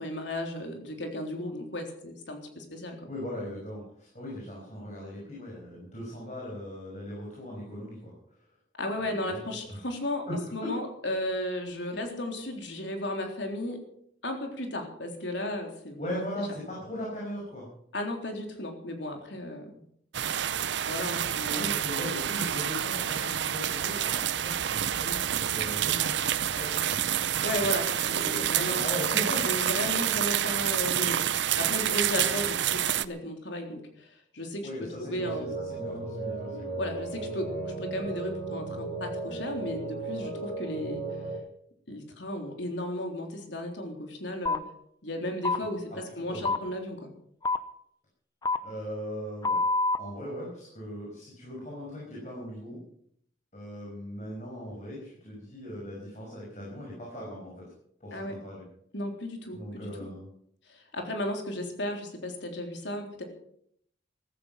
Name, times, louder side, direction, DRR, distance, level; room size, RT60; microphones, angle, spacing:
voice 1, 0.0-3.0 8.8-10.2 10.5-13.8 14.2-16.2 17.9-19.8 20.8-21.7 27.4-28.8 29.4-31.2 31.6-34.7 35.0-35.5 36.8-41.0 41.9-44.6 45.0-47.1 58.1-58.4 58.9-60.1 60.7-63.2, left 1 dB, 75° left, 3 dB, 3.6 m, -34 dB
voice 2, 3.1-8.1 9.0-9.4 9.7-9.9 10.3-10.7 16.0-17.7 21.5-27.0 27.6-27.7 28.5-29.5 32.2-32.3 34.6-36.7 45.9-46.7 48.6-49.6 50.0-52.8 53.5-57.6 58.0-58.7 59.5-60.3, equal, 40° left, -4 dB, 5.9 m, -39 dB
sound 1, 20.1-33.0, right 10 dB, 70° right, 0.6 m, -28 dB
sound 2, 35.1-41.4, right 3 dB, 60° left, 6.9 m, -35 dB
sound 3, 44.5-44.6 45.4-45.6 46.4-46.6 47.4-47.6 48.4-48.6 49.4-50.0, left 3 dB, 20° left, 0.7 m, -25 dB
15.0 x 14.5 x 5.9 m, 0.68 s
head